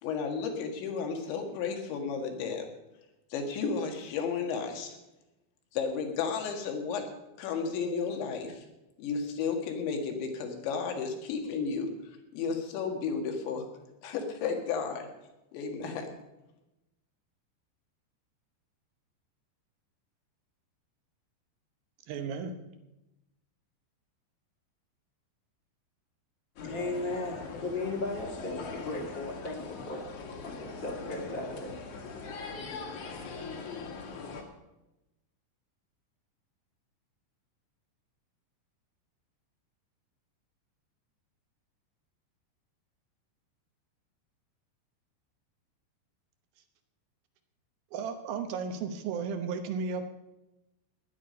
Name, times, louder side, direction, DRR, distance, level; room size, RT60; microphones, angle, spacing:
voice 1, 0.0-2.7 3.3-5.0 5.7-7.1 7.4-8.6 9.0-11.9 12.3-13.7 14.0-15.1 15.5-16.1, left 5 dB, 80° left, 4 dB, 4.0 m, -33 dB
voice 2, 22.1-22.5 47.9-50.1, right 5 dB, 70° right, 7 dB, 2.4 m, -34 dB
sound 1, 26.6-34.4, left 4 dB, 55° left, 2.6 m, -41 dB
voice 3, 26.6-30.0 30.4-31.7, left 2 dB, 40° left, 0 dB, 1.8 m, -36 dB
16.0 x 11.0 x 5.2 m, 0.96 s
omnidirectional pair, 5.2 m